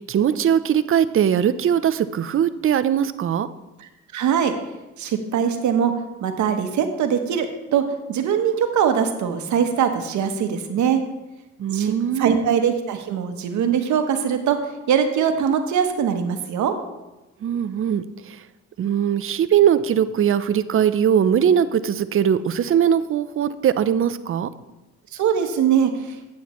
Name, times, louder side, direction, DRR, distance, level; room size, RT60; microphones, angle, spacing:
voice 1, 0.0-3.5 11.6-12.4 17.4-18.4 18.8-24.5, right 9 dB, 45° right, 14 dB, 0.5 m, -20 dB
voice 2, 3.8-4.5 5.0-5.9 6.2-7.8 8.1-11.0 11.7-14.6 14.9-16.7 25.1-26.2, right 8 dB, 70° right, 6 dB, 1.0 m, -22 dB
9.2 x 8.5 x 3.1 m, 1.0 s
cardioid pair, 90°, 30 cm